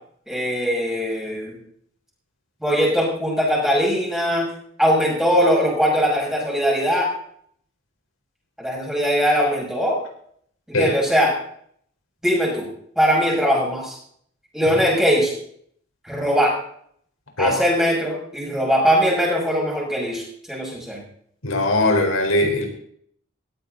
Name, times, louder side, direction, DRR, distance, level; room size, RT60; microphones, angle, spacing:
voice 1, 0.3-1.6 2.6-4.5 4.8-7.1 8.6-10.0 10.7-11.3 12.2-12.7 13.0-14.0 14.5-15.3 16.0-16.5 17.4-21.0, equal, 5° right, -3 dB, 6.6 m, -20 dB
voice 2, 21.4-22.7, left 2 dB, 90° left, 2 dB, 4.4 m, -20 dB
18.0 x 14.5 x 4.1 m, 0.63 s
head